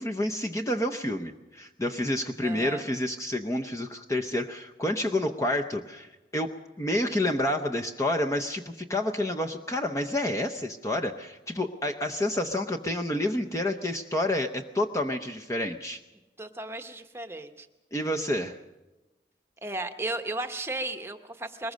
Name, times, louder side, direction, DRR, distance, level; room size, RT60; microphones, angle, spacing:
voice 1, 0.0-6.1 6.3-6.5 6.8-16.0 17.9-18.6, left 1 dB, 15° left, 3 dB, 0.7 m, -29 dB
voice 2, 2.4-2.9 16.4-17.7 19.6-21.7, right 2 dB, 15° right, 6 dB, 1.0 m, -35 dB
22.0 x 20.0 x 6.4 m, 1.1 s
head